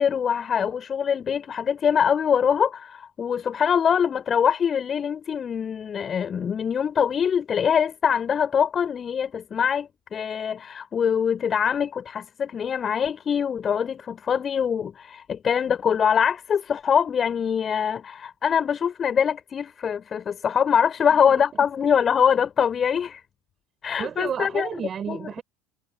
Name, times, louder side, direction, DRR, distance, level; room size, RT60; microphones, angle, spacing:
voice 1, 0.0-23.2 23.8-24.7 25.1-25.2, left 7 dB, 30° left, 4.0 m, -23 dB
voice 2, 21.1-21.4 24.0-25.4, right 8 dB, 35° right, 4.6 m, -32 dB
figure-of-eight pair, 70°, 0 cm